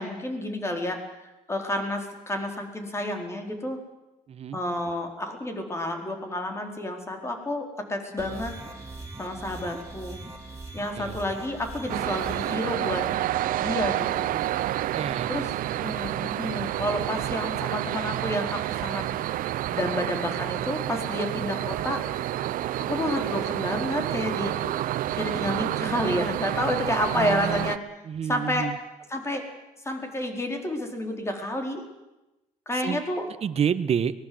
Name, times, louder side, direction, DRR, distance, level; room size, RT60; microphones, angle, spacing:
voice 1, 0.0-3.8 4.5-8.6 9.2-10.2 10.7-13.0 13.6-14.4 15.3-19.0 19.7-22.0 22.8-24.5 25.1-27.8 28.3-28.7 29.1-29.5 29.8-31.8 32.7-33.3, left 1 dB, 20° left, 4 dB, 4.4 m, -30 dB
sound 1, 8.2-12.6, right 2 dB, 20° right, 4.6 m, -41 dB
sound 2, 11.9-27.8, right 13 dB, 85° right, 0.8 m, -29 dB
voice 2, 14.9-15.3 27.1-27.7 28.1-28.8 32.8-33.0 33.4-34.1, right 8 dB, 45° right, 12 dB, 1.3 m, -28 dB
24.0 x 20.0 x 7.9 m, 0.98 s
cardioid pair, 120°, 14 cm